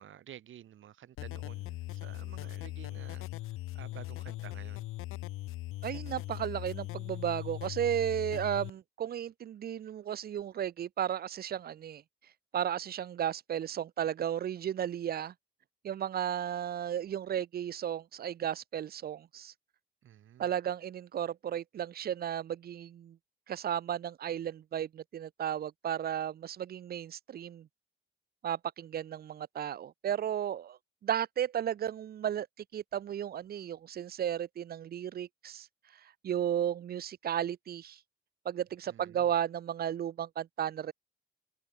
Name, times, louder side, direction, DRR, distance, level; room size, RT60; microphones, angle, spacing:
voice 1, 0.0-4.9 20.0-20.5 38.9-39.3, right 11 dB, 70° right, 1.0 m, -52 dB
sound 1, 1.2-8.7, left 17 dB, 90° left, 0.5 m, -40 dB
voice 2, 5.8-12.0 12.5-15.3 15.8-19.5 20.4-23.2 23.5-27.7 28.4-32.5 32.7-35.7 36.2-38.0 38.5-40.9, right 10 dB, 50° right, 0.4 m, -34 dB
cardioid pair, 65°, 21 cm